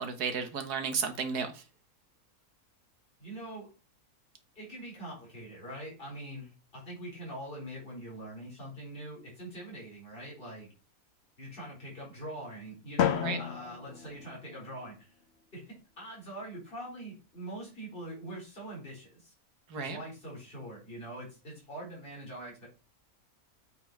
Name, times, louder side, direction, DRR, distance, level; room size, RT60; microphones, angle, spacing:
voice 1, 0.0-1.6 13.2-13.4 19.7-20.0, right 6 dB, 80° right, 7 dB, 1.7 m, -33 dB
voice 2, 3.2-3.7 4.5-10.7 11.4-15.1 15.5-19.3 19.7-22.7, right 1 dB, 35° left, -4 dB, 4.3 m, -43 dB
Drum, 13.0-15.0, left 9 dB, 60° left, 0.7 m, -32 dB
8.0 x 4.3 x 4.6 m, 0.32 s
omnidirectional pair, 1.7 m